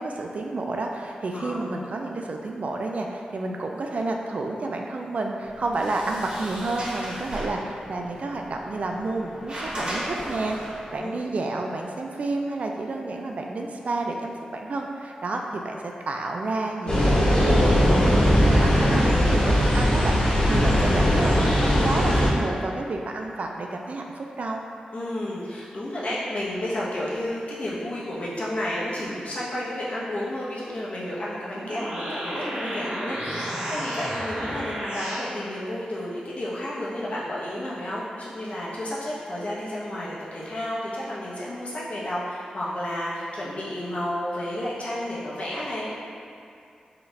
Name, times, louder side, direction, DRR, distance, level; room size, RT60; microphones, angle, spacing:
voice 1, 0.0-24.7, right 2 dB, 60° right, 1 dB, 0.4 m, -30 dB
voice 2, 1.3-1.7 11.0-11.1 18.7-19.0 20.5-21.1 24.9-45.9, left 1 dB, 55° left, -7 dB, 1.0 m, -31 dB
Sliding door, 5.4-11.0, equal, 40° right, 1.2 m, -36 dB
sound 1, 16.9-22.3, equal, 40° left, 1.3 m, -19 dB
sound 2, 31.5-35.3, right 1 dB, 75° right, 1.5 m, -32 dB
4.9 x 2.4 x 3.3 m, 2.5 s
wide cardioid pair, 75°, 3 cm